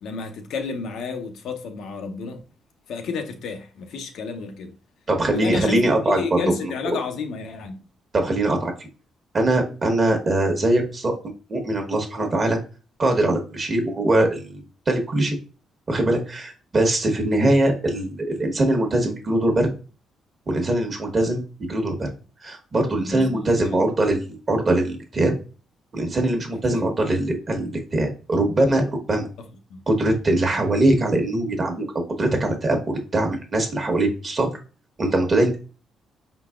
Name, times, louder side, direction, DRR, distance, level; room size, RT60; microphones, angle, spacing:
voice 1, 0.0-2.4 2.9-4.7 5.3-7.8 23.1-23.8 26.7-26.9 29.4-29.8 30.4-30.6, left 4 dB, 75° left, 0.7 m, -31 dB
voice 2, 5.1-6.4 6.8-7.0 8.1-8.7 9.3-11.1 11.5-12.6 13.0-14.6 14.9-15.4 15.9-19.7 20.5-22.1 22.4-25.4 25.9-29.3 29.9-31.9 32.2-34.6 35.0-35.6, right 1 dB, 35° right, 1.1 m, -22 dB
4.7 x 3.9 x 2.4 m
cardioid pair, 90°, 0 cm